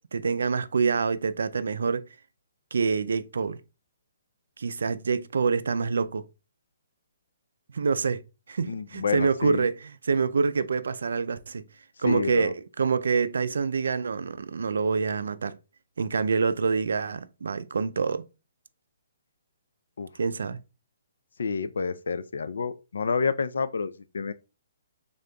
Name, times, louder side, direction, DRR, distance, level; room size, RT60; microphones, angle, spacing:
voice 1, 0.1-2.1 2.7-3.6 4.6-6.2 7.7-8.2 8.5-11.6 12.0-15.6 16.0-18.2 20.2-20.6, right 5 dB, 80° right, 0.4 m, -26 dB
voice 2, 8.6-9.6 12.0-12.5 20.0-20.1 21.4-24.3, left 5 dB, 90° left, 0.4 m, -29 dB
5.2 x 3.6 x 2.2 m
hypercardioid pair, 175°, 0 cm